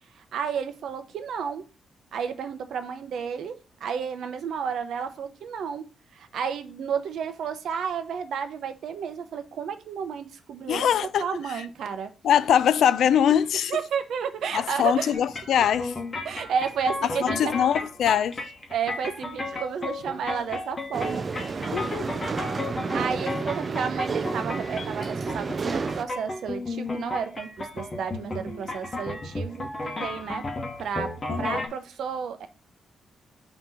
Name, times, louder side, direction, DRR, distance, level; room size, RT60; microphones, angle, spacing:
voice 1, 0.0-1.6 2.1-10.9 11.2-12.1 13.7-15.1 15.5-15.6 16.2-17.5 18.7-21.8 22.9-30.5 30.8-32.5, right 7 dB, 65° right, 0.7 m, -32 dB
voice 2, 10.7-11.2 12.2-13.8 14.5-15.9 17.2-18.4 21.7-22.1 31.3-31.7, left 9 dB, 65° left, 0.3 m, -22 dB
sound 1, 15.1-31.7, left 2 dB, 25° left, 1.0 m, -34 dB
sound 2, 20.9-26.0, right 4 dB, 30° right, 0.3 m, -30 dB
5.9 x 2.9 x 5.4 m
wide cardioid pair, 180°, 0 cm